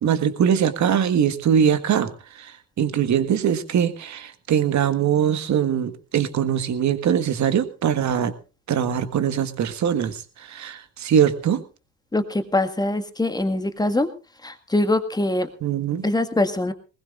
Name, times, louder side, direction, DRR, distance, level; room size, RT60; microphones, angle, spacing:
voice 1, 0.0-8.3 8.7-11.6 15.6-16.1, right 8 dB, 35° right, 11 dB, 1.6 m, -22 dB
voice 2, 12.1-14.1 14.4-15.5 16.0-16.7, left 2 dB, 10° left, 8 dB, 1.7 m, -23 dB
20.5 x 20.0 x 2.5 m, 0.33 s
figure-of-eight pair, 70°, 49 cm